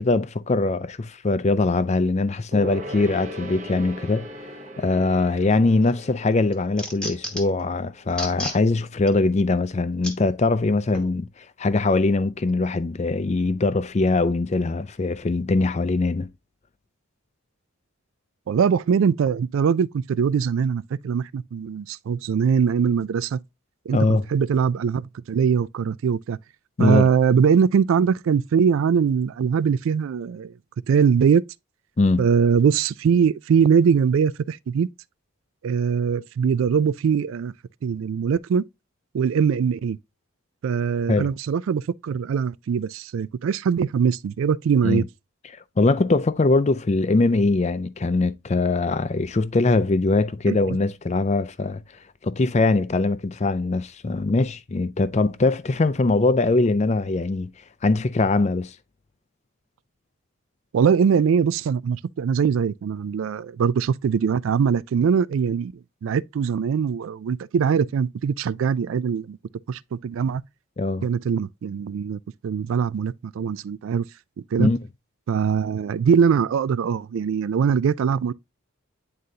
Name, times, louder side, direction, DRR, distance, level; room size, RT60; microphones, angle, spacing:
voice 1, 0.0-4.3 4.8-11.3 11.6-16.3 23.9-24.3 26.8-27.1 32.0-32.2 41.1-41.3 44.8-45.0 45.8-51.8 52.2-57.5 57.8-58.7 70.8-71.1 74.6-74.8, left 3 dB, 30° left, 0.4 m, -22 dB
Gong, 2.5-8.4 8.7-8.8, left 1 dB, 35° right, 1.0 m, -39 dB
sound 1, 5.5-5.9 6.3-7.6 8.1-8.6 9.1-9.2 10.0-10.2 10.9-11.1, left 1 dB, 5° left, 1.1 m, -32 dB
voice 2, 18.5-23.4 23.9-26.4 26.8-30.5 30.9-31.4 32.2-34.9 35.6-37.5 37.8-38.6 39.1-40.0 40.6-45.0 50.5-50.8 60.7-65.7 66.0-69.4 69.7-70.4 71.0-74.1 74.5-74.7 75.3-78.3, right 6 dB, 65° right, 0.3 m, -22 dB
9.5 x 3.8 x 2.7 m
head